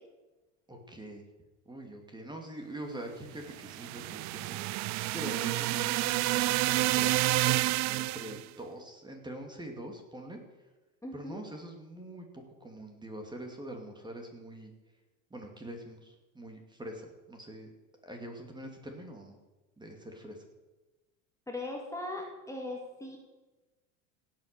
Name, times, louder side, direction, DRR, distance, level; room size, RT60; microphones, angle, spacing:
voice 1, 0.7-1.3 1.7-10.4 11.1-14.7 15.3-17.7 18.0-19.4 19.8-20.4, right 1 dB, 10° right, 3 dB, 2.7 m, -44 dB
sound 1, 3.5-8.4, right 19 dB, 45° right, 0.4 m, -29 dB
voice 2, 11.0-11.4 21.5-23.2, left 2 dB, 10° left, 0 dB, 2.4 m, -39 dB
17.0 x 8.6 x 6.8 m, 1.2 s
supercardioid pair, 120°, 39 cm